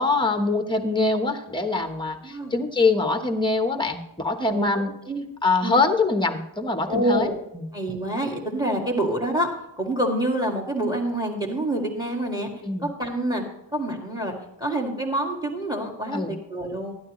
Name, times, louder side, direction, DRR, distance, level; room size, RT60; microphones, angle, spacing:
voice 1, 0.0-4.9 5.4-7.7 12.6-12.9 16.1-16.3, left 3 dB, 10° left, 6 dB, 1.0 m, -24 dB
voice 2, 2.2-2.6 4.5-4.7 5.1-5.2 5.6-5.8 6.9-7.4 7.7-9.5 9.8-12.5 12.8-13.4 13.7-14.3 14.6-16.9, right 1 dB, 10° right, 1 dB, 2.0 m, -27 dB
12.5 x 12.0 x 3.1 m, 0.83 s
wide cardioid pair, 165°, 47 cm